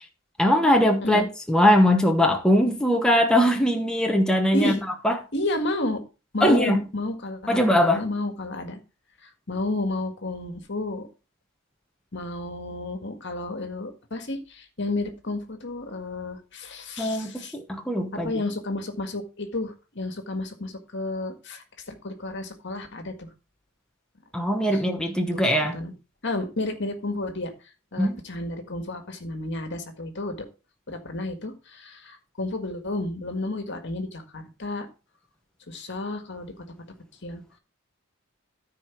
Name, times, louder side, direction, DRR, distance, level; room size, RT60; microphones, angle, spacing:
voice 1, 0.4-4.7 5.0-5.2 6.4-6.8 7.5-8.0 17.0-18.4 24.3-25.8 28.0-28.2, equal, 5° left, 1.0 m, -21 dB
voice 2, 5.3-6.0 6.3-8.8 9.2-11.1 12.1-17.5 18.1-23.3 24.7-24.8 25.3-25.9 26.2-27.5 27.9-30.5 30.9-34.9 35.7-36.6 37.2-37.4, left 2 dB, 55° left, 1.8 m, -31 dB
14.0 x 4.7 x 4.5 m
head